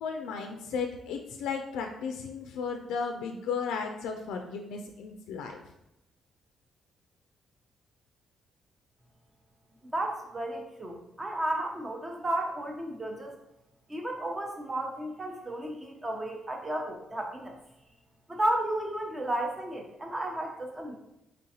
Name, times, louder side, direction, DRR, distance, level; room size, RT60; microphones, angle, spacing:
voice 1, 0.0-5.6, left 5 dB, 90° left, 3 dB, 0.3 m, -34 dB
voice 2, 9.9-13.3 13.9-17.6 18.3-21.0, right 1 dB, 20° right, 2 dB, 0.7 m, -33 dB
3.8 x 3.3 x 2.8 m, 0.86 s
cardioid pair, 90°, 0 cm